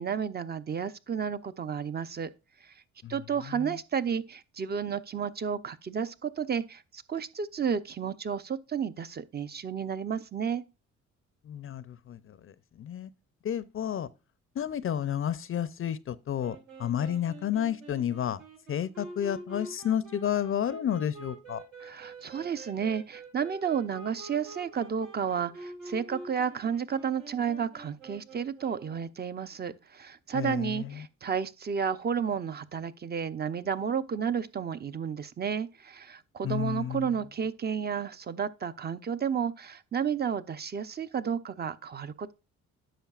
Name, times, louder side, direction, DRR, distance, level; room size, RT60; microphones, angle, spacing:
voice 1, 0.0-2.3 2.6-2.7 3.1-10.6 21.8-42.3, right 7 dB, 35° right, 0.6 m, -32 dB
voice 2, 11.5-13.1 13.4-14.1 14.6-18.4 18.7-21.6 30.3-31.1 36.4-37.2, left 10 dB, 45° left, 0.5 m, -31 dB
sound 1, 16.4-29.0, right 2 dB, 85° right, 4.6 m, -46 dB
10.0 x 6.5 x 2.4 m
cardioid pair, 90°, 30 cm